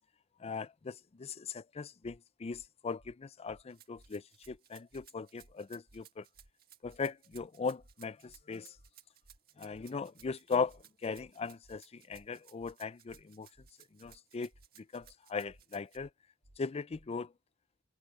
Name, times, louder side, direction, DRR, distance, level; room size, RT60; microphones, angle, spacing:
voice 1, 0.4-6.2 6.8-8.8 9.6-13.5 13.9-14.5 14.8-16.1 16.6-17.3, left 5 dB, 30° left, 0.4 m, -39 dB
sound 1, 2.0-2.2 2.5-2.7 3.0-3.1 3.5-3.6 3.9-4.1 4.4-4.6 4.9-5.1 5.4-5.5 5.9-6.0 6.3-6.5 6.8-7.0 7.3-7.5 7.8-7.9 8.3-8.4 8.7-8.9 9.2-9.4 9.7-9.9 10.2-10.3 10.7-10.8 11.1-11.3 11.6-11.8 12.1-12.3 12.6-12.7 13.1-13.2 13.5-13.7 14.0-14.2 14.5-14.7 15.0-15.1 15.5-15.6 15.9-16.1 16.4-16.6 16.9-17.1, right 1 dB, 65° right, 1.8 m, -62 dB
Rattle (instrument), 3.7-16.0, right 11 dB, 45° right, 1.8 m, -61 dB
head